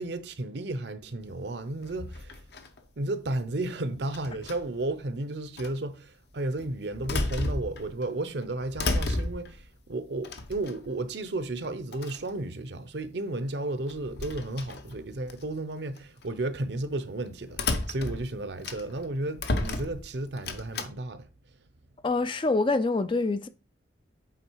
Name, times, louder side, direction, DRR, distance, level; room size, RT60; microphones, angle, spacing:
voice 1, 0.0-2.4 3.0-21.3, right 2 dB, 60° right, 0.7 m, -33 dB
sound 1, 1.8-2.8 4.1-4.8 5.6-5.7 6.6-8.1 8.4-9.6 10.2-11.0 11.6-11.7 11.9-12.3 13.9-15.4 16.0-16.2 17.5-19.1 19.4-20.9, left 2 dB, 60° left, 0.8 m, -33 dB
voice 2, 22.0-23.5, left 3 dB, 25° left, 0.3 m, -25 dB
8.2 x 3.8 x 4.6 m
head